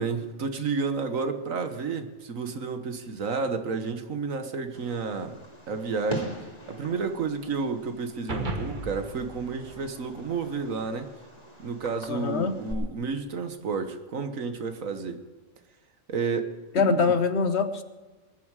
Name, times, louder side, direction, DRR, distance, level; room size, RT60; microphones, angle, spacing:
voice 1, 0.0-5.4 5.7-6.3 6.7-11.1 11.6-15.2 16.1-17.1, right 4 dB, 75° right, 8 dB, 1.7 m, -31 dB
Fireworks, 4.7-12.7, left 1 dB, 30° left, 2.7 m, -43 dB
sound 1, 8.3-10.8, right 2 dB, 35° right, 1.5 m, -36 dB
voice 2, 12.1-12.5 16.7-17.8, left 5 dB, 55° left, 10 dB, 1.2 m, -24 dB
20.5 x 11.0 x 4.9 m, 1.2 s
omnidirectional pair, 1.4 m